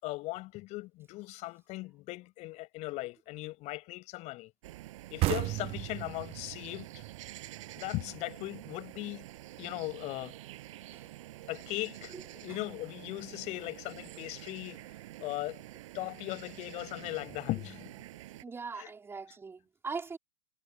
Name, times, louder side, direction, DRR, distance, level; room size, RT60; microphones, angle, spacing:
voice 1, 0.0-4.5 5.1-7.0 7.8-9.2 9.6-10.4 11.5-14.8 15.2-15.6 15.9-17.9 18.8-18.9, left 20 dB, 40° left, 5.9 m, -38 dB
sound 1, 4.6-18.4, right 16 dB, 60° right, 8.0 m, -48 dB
sound 2, 5.2-8.6, right 19 dB, 30° right, 0.9 m, -35 dB
voice 2, 18.4-20.2, right 5 dB, 15° right, 3.9 m, -40 dB
hypercardioid pair, 120°, 19 cm